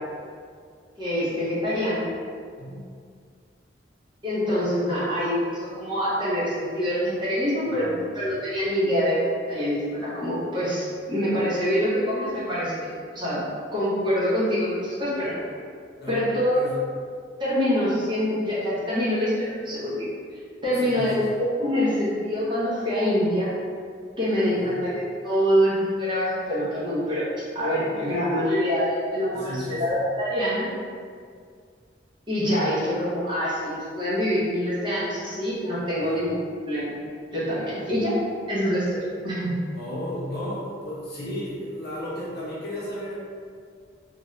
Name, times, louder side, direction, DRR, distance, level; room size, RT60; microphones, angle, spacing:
voice 1, 1.0-2.1 4.2-13.5 13.7-15.4 16.1-16.6 17.4-20.1 20.6-23.5 24.2-27.3 27.5-30.7 32.3-37.0 37.3-38.2 38.5-39.6, equal, 25° right, -10 dB, 0.9 m, -25 dB
voice 2, 7.6-8.2 16.0-16.2 16.5-16.8 20.7-21.3 24.4-24.9 28.1-28.2 29.3-30.0 36.0-36.2 39.7-43.1, equal, 60° left, -8 dB, 0.9 m, -35 dB
2.9 x 2.4 x 3.1 m, 2.1 s
head